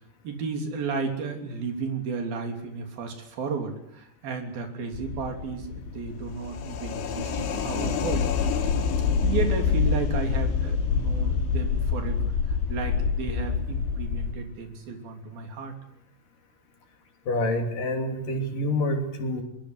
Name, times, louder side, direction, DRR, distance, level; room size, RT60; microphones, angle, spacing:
voice 1, 0.2-8.6 9.2-15.7, right 5 dB, 50° right, 5 dB, 4.7 m, -33 dB
sound 1, 4.9-14.3, left 6 dB, 70° left, 4.5 m, -26 dB
voice 2, 17.3-19.4, left 1 dB, 45° left, 4 dB, 4.1 m, -27 dB
24.0 x 22.0 x 8.1 m, 0.73 s
omnidirectional pair, 5.9 m